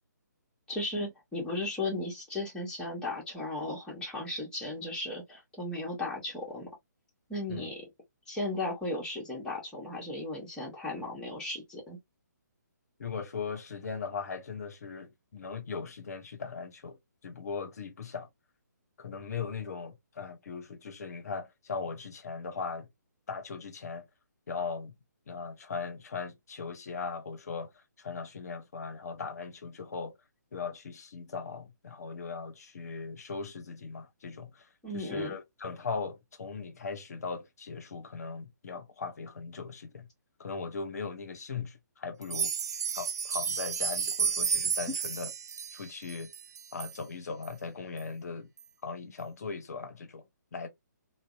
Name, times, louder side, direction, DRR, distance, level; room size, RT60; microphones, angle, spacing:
voice 1, 0.7-6.7 7.3-7.8 8.3-12.0 34.8-35.3, left 2 dB, 10° left, 1.0 m, -35 dB
voice 2, 13.0-17.0 17.2-18.3 19.0-22.9 23.3-24.1 24.5-24.9 25.3-30.2 30.5-34.7 34.9-40.1 40.4-42.5 42.9-45.3 45.7-46.3 46.7-48.5 48.8-50.2 50.5-50.7, left 5 dB, 55° left, 0.6 m, -39 dB
sound 1, 42.2-47.0 47.4-47.5 48.0-48.1 48.6-48.7, right 6 dB, 60° right, 0.4 m, -32 dB
2.6 x 2.0 x 2.3 m
figure-of-eight pair, 140°, 10 cm